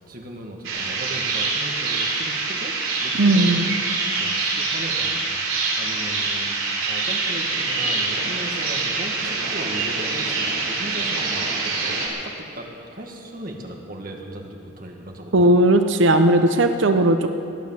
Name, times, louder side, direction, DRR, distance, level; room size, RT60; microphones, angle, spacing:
voice 1, 0.0-2.7 3.0-3.7 4.2-5.2 5.8-6.5 6.8-15.5, right 1 dB, 45° right, 1 dB, 1.8 m, -37 dB
sound 1, 0.6-12.1, right 3 dB, 85° right, 3.9 m, -25 dB
voice 2, 3.2-3.7 15.3-17.3, right 1 dB, 60° right, 8 dB, 0.7 m, -17 dB
18.0 x 10.5 x 7.3 m, 2.7 s
head